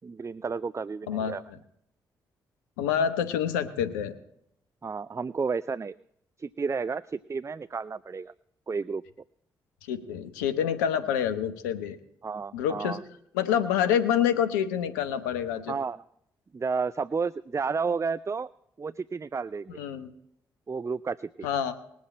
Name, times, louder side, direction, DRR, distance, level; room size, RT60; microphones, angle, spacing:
voice 1, 0.0-1.4 4.8-6.0 6.4-8.3 8.7-9.0 12.2-13.0 15.7-16.0 16.5-18.5 18.8-19.8 20.7-21.5, right 5 dB, 30° right, 16 dB, 0.5 m, -31 dB
voice 2, 1.1-1.6 2.8-4.1 9.9-12.0 12.5-13.0 13.3-15.7 19.8-20.1 21.4-21.7, left 9 dB, 90° left, 9 dB, 1.1 m, -27 dB
21.0 x 7.8 x 4.3 m, 0.72 s
hypercardioid pair, 40°, 10 cm